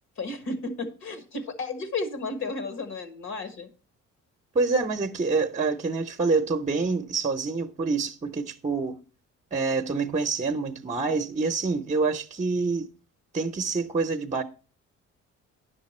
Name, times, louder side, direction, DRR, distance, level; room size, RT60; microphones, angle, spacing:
voice 1, 0.2-3.7, left 3 dB, 65° left, 1.6 m, -33 dB
voice 2, 4.5-9.0 9.5-12.9 13.3-14.4, right 4 dB, 25° right, 0.8 m, -26 dB
10.5 x 6.7 x 4.3 m
cardioid pair, 90°, 30 cm